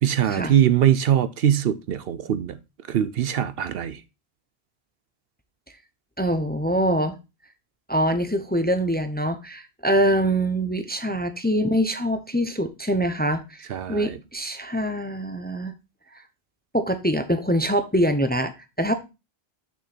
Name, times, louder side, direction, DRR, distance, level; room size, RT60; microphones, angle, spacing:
voice 1, 0.0-2.6 2.9-4.0 11.1-11.2 13.7-14.2, right 10 dB, 70° right, 0.8 m, -22 dB
voice 2, 6.2-7.2 7.9-15.7 16.7-18.5 18.8-18.9, equal, 10° left, 0.6 m, -24 dB
6.6 x 6.3 x 4.2 m
omnidirectional pair, 1.1 m